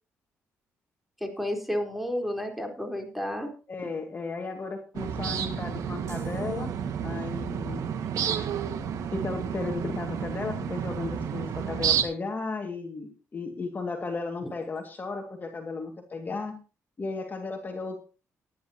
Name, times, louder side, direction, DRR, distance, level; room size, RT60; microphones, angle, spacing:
voice 1, 1.2-3.5, equal, ahead, 3 dB, 4.2 m, -31 dB
voice 2, 3.7-6.7 7.0-7.8 9.1-16.6 17.0-18.0, left 3 dB, 35° left, 3 dB, 2.2 m, -34 dB
sound 1, 4.9-12.0, right 8 dB, 75° right, 1.8 m, -31 dB
sound 2, 6.1-7.4, right 3 dB, 55° right, 7.0 m, -49 dB
18.5 x 10.5 x 2.9 m, 0.34 s
cardioid pair, 85°, 6 cm